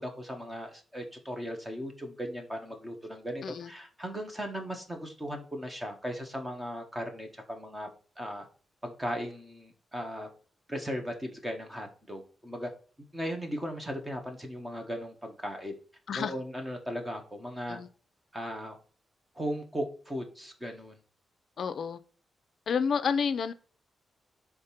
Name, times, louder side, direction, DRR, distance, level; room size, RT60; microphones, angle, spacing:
voice 1, 0.0-7.9 8.2-8.5 8.8-10.3 10.7-12.7 13.1-15.8 16.1-17.8 18.3-18.8 19.3-21.0, equal, 15° right, 4 dB, 1.3 m, -37 dB
voice 2, 21.6-22.0 22.7-23.5, left 6 dB, 60° left, 12 dB, 0.4 m, -29 dB
5.2 x 3.6 x 5.7 m, 0.39 s
wide cardioid pair, 145°, 0 cm